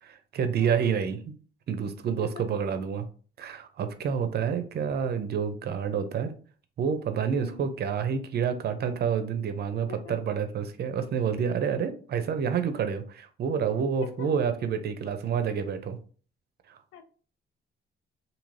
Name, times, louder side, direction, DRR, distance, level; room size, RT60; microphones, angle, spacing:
voice 1, 0.0-1.2 1.7-3.1 3.4-6.3 6.8-16.0 16.7-16.8, right 7 dB, 55° right, 0.6 m, -28 dB
voice 2, 0.6-1.0 2.2-2.5 7.3-7.7 9.9-10.2 14.0-14.3 16.9-17.0, left 6 dB, 90° left, 0.5 m, -43 dB
3.1 x 2.7 x 2.6 m
cardioid pair, 90°, 20 cm